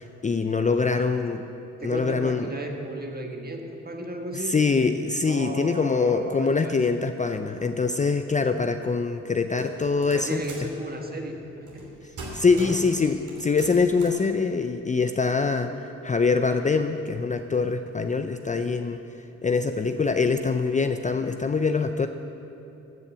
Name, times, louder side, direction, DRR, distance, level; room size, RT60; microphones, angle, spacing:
voice 1, 0.0-1.4 1.8-2.5 4.5-10.4 12.3-19.0 19.4-22.1, left 4 dB, 25° left, 7 dB, 0.5 m, -24 dB
voice 2, 0.8-1.1 1.8-4.6 5.2-6.8 9.6-9.7 10.1-11.9 12.5-12.8, right 1 dB, 30° right, 3 dB, 1.6 m, -35 dB
sound 1, 9.6-10.7 11.7-11.9 12.2-12.9 13.3-14.2, right 2 dB, 75° right, 2.8 m, -41 dB
15.0 x 5.4 x 7.4 m, 2.8 s
cardioid pair, 60°, 30 cm